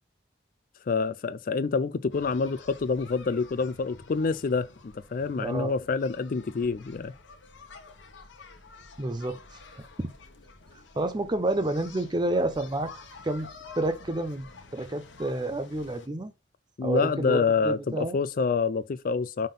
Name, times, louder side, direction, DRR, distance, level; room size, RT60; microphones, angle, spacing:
voice 1, 0.9-7.1 16.8-19.5, left 4 dB, 50° left, 0.4 m, -27 dB
sound 1, 2.1-16.1, left 3 dB, 80° left, 1.2 m, -49 dB
voice 2, 5.4-5.7 9.0-9.4 9.8-10.1 11.0-12.9 13.2-13.5 13.7-16.3 16.8-18.2, right 2 dB, 25° right, 0.7 m, -29 dB
5.4 x 3.7 x 5.6 m
head